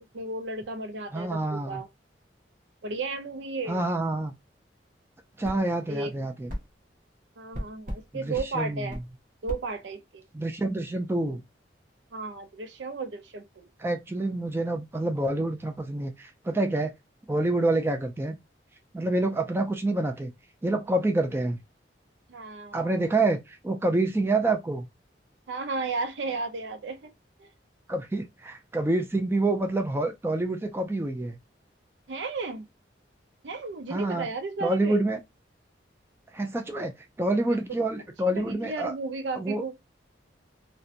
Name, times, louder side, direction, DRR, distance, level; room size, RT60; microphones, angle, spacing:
voice 1, 0.0-1.9 2.8-3.8 5.9-6.1 7.4-9.0 9.4-10.3 12.1-13.7 22.3-23.0 25.5-27.1 27.4-27.5 32.1-32.7 33.4-35.0 37.5-37.9 38.3-39.7, right 3 dB, 80° right, 0.5 m, -34 dB
voice 2, 1.1-1.8 3.7-4.3 5.4-6.5 8.1-9.0 10.3-11.4 13.8-16.9 17.3-18.4 18.9-20.3 20.6-21.6 22.7-24.9 27.9-31.4 33.9-34.3 34.6-35.2 36.3-38.9 39.4-39.6, right 2 dB, 15° right, 0.3 m, -27 dB
sound 1, 5.4-5.6 6.5-6.7 7.5-8.0 8.3-8.5 8.9-9.1 9.5-9.6, equal, 45° right, 0.8 m, -35 dB
2.8 x 2.2 x 2.4 m
head